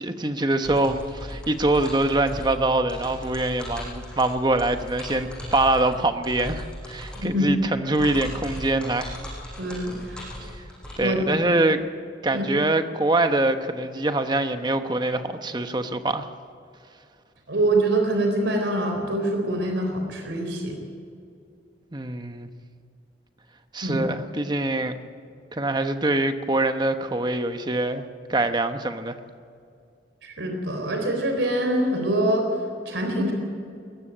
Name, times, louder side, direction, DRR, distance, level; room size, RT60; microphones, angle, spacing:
voice 1, 0.0-9.2 11.0-11.8 12.2-16.3 21.9-22.5 23.7-24.9 25.5-29.2, right 2 dB, 25° right, 8 dB, 1.0 m, -24 dB
sound 1, 0.6-10.9, equal, 5° left, 6.6 m, -38 dB
voice 2, 7.2-7.5 9.6-10.2 11.0-11.2 12.3-12.5 17.5-20.7 23.8-24.1 30.2-32.5 32.9-33.3, right 1 dB, 90° right, 3 dB, 3.8 m, -24 dB
20.0 x 15.0 x 9.1 m, 2.4 s
head